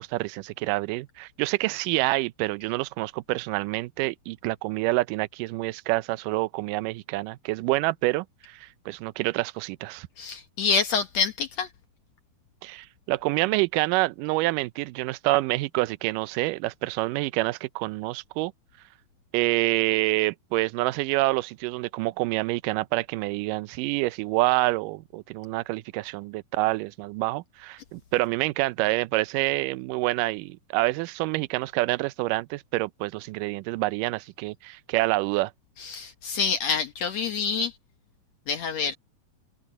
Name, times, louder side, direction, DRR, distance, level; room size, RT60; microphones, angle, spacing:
voice 1, 0.0-10.1 12.6-18.5 19.3-35.5, right 20 dB, 80° right, 2.0 m, -27 dB
voice 2, 10.2-11.7 35.8-37.7 38.5-39.0, left 5 dB, 70° left, 1.6 m, -27 dB
omnidirectional pair, 4.3 m